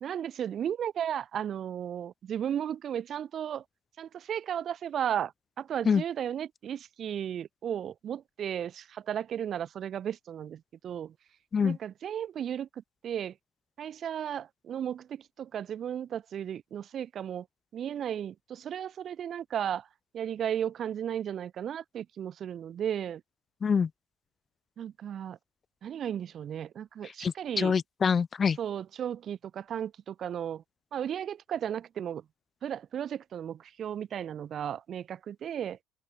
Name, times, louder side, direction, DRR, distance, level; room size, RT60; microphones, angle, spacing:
voice 1, 0.0-3.6 4.0-5.3 5.6-11.1 11.6-12.7 13.0-13.3 13.8-17.5 17.7-19.9 20.1-23.2 24.8-25.4 25.8-27.8 28.6-30.6 30.9-32.2 32.6-35.8, right 9 dB, 45° right, 3.8 m, -35 dB
voice 2, 27.0-28.6, left 6 dB, 30° left, 1.0 m, -26 dB
supercardioid pair, 105°, 0 cm